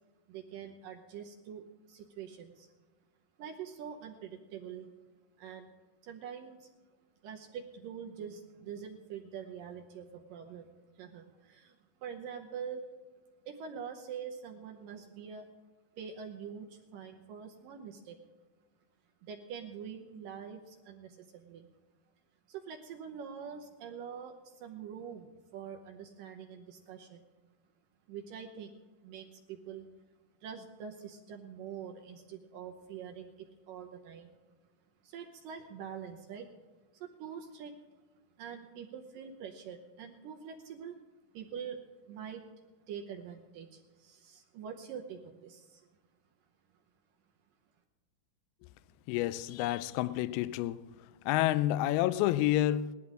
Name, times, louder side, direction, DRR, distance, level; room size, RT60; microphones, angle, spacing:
voice 1, 0.3-2.7 3.4-4.9 5.4-5.7 6.0-6.7 7.2-10.7 11.0-11.8 12.0-12.8 13.5-15.5 16.0-18.2 19.2-21.7 22.5-27.2 28.1-28.7 29.0-29.9 30.4-34.4 35.0-36.5 36.9-37.7 38.4-41.0 41.3-41.8 42.1-42.4 42.9-45.9, right 7 dB, 70° right, 2.2 m, -45 dB
voice 2, 49.1-50.9 51.3-52.9, left 14 dB, 80° left, 2.4 m, -29 dB
19.0 x 11.5 x 3.7 m
omnidirectional pair, 4.7 m